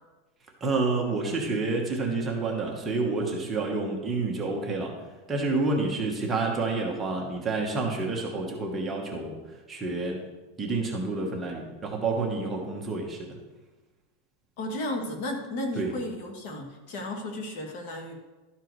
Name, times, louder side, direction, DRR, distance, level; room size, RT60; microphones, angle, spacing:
voice 1, 0.6-4.9 5.3-9.4 9.7-10.2 10.6-13.3 15.8-15.9, right 3 dB, 15° right, -1 dB, 1.1 m, -29 dB
voice 2, 14.6-18.1, left 1 dB, 50° left, 3 dB, 1.4 m, -34 dB
12.0 x 4.6 x 4.6 m, 1.2 s
supercardioid pair, 170°, 0 cm